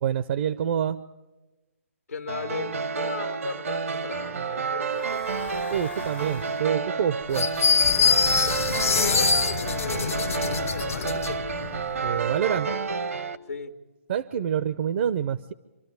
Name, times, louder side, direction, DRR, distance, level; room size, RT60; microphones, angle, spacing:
voice 1, 0.0-1.0 5.7-7.5 12.0-12.7 14.1-15.5, right 9 dB, 50° right, 14 dB, 0.6 m, -26 dB
voice 2, 2.1-5.2 8.9-12.8 13.5-13.8, left 5 dB, 90° left, 6 dB, 1.6 m, -37 dB
sound 1, 2.3-13.4, right 5 dB, 75° right, 1.1 m, -30 dB
Breathing / Wind, 4.8-6.8 7.7-13.1, left 9 dB, 50° left, 0.7 m, -38 dB
sound 2, 7.3-11.3, left 5 dB, 75° left, 1.1 m, -23 dB
26.0 x 13.0 x 9.4 m, 1.2 s
figure-of-eight pair, 135°, 8 cm